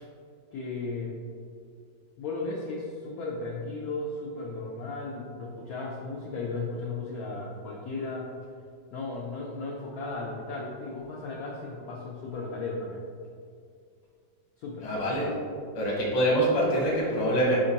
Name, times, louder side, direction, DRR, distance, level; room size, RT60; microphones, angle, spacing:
voice 1, 0.5-1.1 2.2-8.4 8.9-13.0 14.6-14.9, left 3 dB, 80° left, -3 dB, 0.8 m, -35 dB
voice 2, 14.8-15.3 15.7-17.6, right 1 dB, 35° left, -4 dB, 0.6 m, -25 dB
4.3 x 3.8 x 2.8 m, 2.2 s
omnidirectional pair, 2.1 m